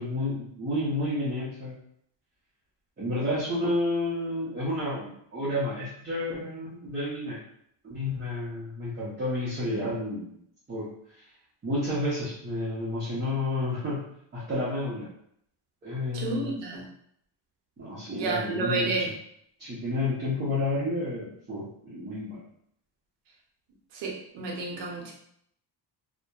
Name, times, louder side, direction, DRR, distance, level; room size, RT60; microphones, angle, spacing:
voice 1, 0.0-1.8 3.0-7.4 7.8-10.2 10.7-11.3 11.6-14.0 14.3-15.1 15.8-16.5 17.8-18.9 19.6-22.4, left 1 dB, 25° right, -9 dB, 0.7 m, -30 dB
voice 2, 16.1-16.8 18.1-19.1 23.9-25.1, right 3 dB, 80° right, -1 dB, 0.8 m, -30 dB
2.7 x 2.1 x 2.3 m, 0.70 s
cardioid pair, 140°, 42 cm